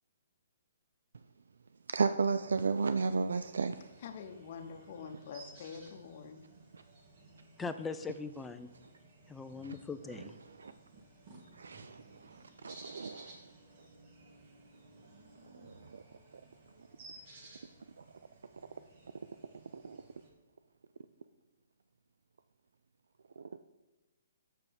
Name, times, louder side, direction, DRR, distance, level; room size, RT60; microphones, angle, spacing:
voice 1, 1.9-3.9 6.7-6.8 9.6-9.8 10.1-10.7 11.5-13.5 13.8-13.9 15.4-16.0 16.3-16.4 18.0-18.1 19.7-20.1 23.4-23.6, right 4 dB, 85° right, 11 dB, 0.3 m, -35 dB
sound 1, 3.0-20.3, right 2 dB, 40° right, 1.6 m, -57 dB
voice 2, 4.0-6.4, left 6 dB, 45° left, 5 dB, 0.9 m, -46 dB
voice 3, 7.6-8.7 9.3-10.3, left 4 dB, 5° left, 9 dB, 0.3 m, -40 dB
6.7 x 6.0 x 5.4 m, 1.1 s
hypercardioid pair, 155°, 0 cm